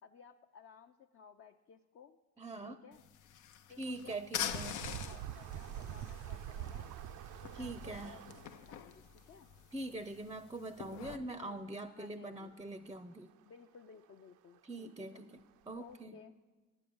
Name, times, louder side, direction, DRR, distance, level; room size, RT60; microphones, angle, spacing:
voice 1, 0.0-2.2 2.7-3.1 3.7-6.9 7.4-9.5 11.4-12.5 13.4-15.3 15.8-16.4, left 6 dB, 45° left, 4 dB, 0.5 m, -57 dB
voice 2, 2.4-2.8 3.8-4.8 7.5-8.2 9.7-13.3 14.6-15.3 15.7-16.2, right 2 dB, 15° right, 12 dB, 0.5 m, -43 dB
sound 1, 2.9-11.2, left 9 dB, 85° left, 0.7 m, -45 dB
sound 2, 4.4-8.8 10.7-10.8 11.0-11.1 12.0-12.1 14.6-14.7 15.2-15.3 15.8-15.9, right 11 dB, 75° right, 0.5 m, -45 dB
9.4 x 9.4 x 6.9 m, 1.3 s
cardioid pair, 90°, 30 cm